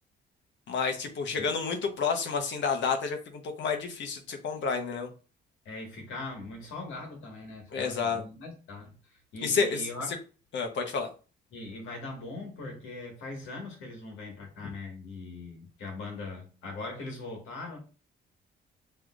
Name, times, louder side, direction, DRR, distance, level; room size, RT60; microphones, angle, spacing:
voice 1, 0.7-5.1 7.7-8.2 9.4-9.9 10.5-11.1, left 5 dB, 65° left, 1.1 m, -30 dB
voice 2, 5.6-10.1 11.5-17.8, left 2 dB, 85° left, 1.7 m, -41 dB
6.2 x 3.3 x 2.5 m
cardioid pair, 90°, 20 cm